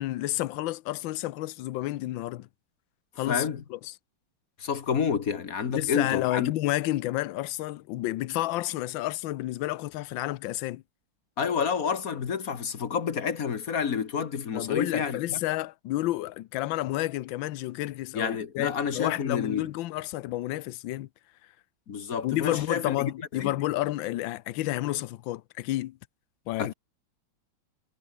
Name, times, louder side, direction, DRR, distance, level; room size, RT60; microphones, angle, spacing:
voice 1, 0.0-2.5 3.2-3.9 5.7-10.8 14.5-21.1 22.2-26.0 26.5-26.7, left 16 dB, 75° left, 1.4 m, -30 dB
voice 2, 3.3-3.6 4.6-6.5 11.4-15.4 18.1-19.6 21.9-23.5 26.6-26.7, left 6 dB, 45° left, 1.6 m, -29 dB
omnidirectional pair, 2.3 m